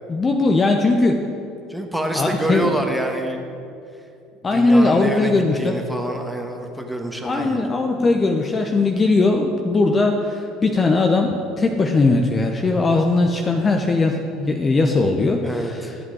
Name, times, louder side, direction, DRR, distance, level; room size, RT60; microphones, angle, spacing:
voice 1, 0.1-1.3 2.1-2.8 4.4-5.7 7.2-15.9, left 3 dB, 25° left, 3 dB, 0.8 m, -19 dB
voice 2, 1.7-3.4 4.5-7.6 15.4-15.9, right 1 dB, 5° right, 2 dB, 1.5 m, -26 dB
13.5 x 8.4 x 4.8 m, 2.6 s
figure-of-eight pair, 65°, 0 cm